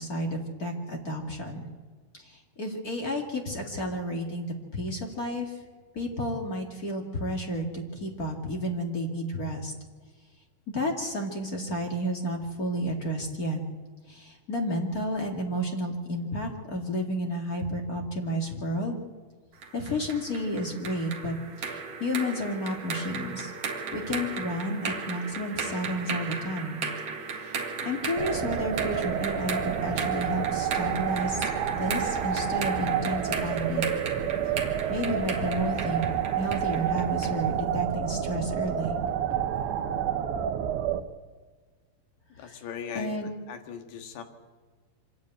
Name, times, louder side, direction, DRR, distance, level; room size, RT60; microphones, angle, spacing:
voice 1, 0.0-1.7 2.1-5.6 5.9-9.7 10.7-13.6 14.1-19.0 19.7-23.5 23.9-26.9 27.4-33.8 34.9-39.0 42.4-42.6 42.9-43.3, equal, 30° left, 1 dB, 1.8 m, -31 dB
sound 1, 19.6-37.4, right 5 dB, 50° right, 2.2 m, -36 dB
sound 2, 28.2-41.0, right 9 dB, 80° right, 1.7 m, -29 dB
sound 3, 34.2-39.7, right 2 dB, 35° right, 5.7 m, -44 dB
voice 2, 42.4-43.1 43.5-44.2, left 7 dB, 80° left, 5 dB, 3.9 m, -38 dB
25.5 x 11.5 x 9.2 m, 1.5 s
omnidirectional pair, 4.9 m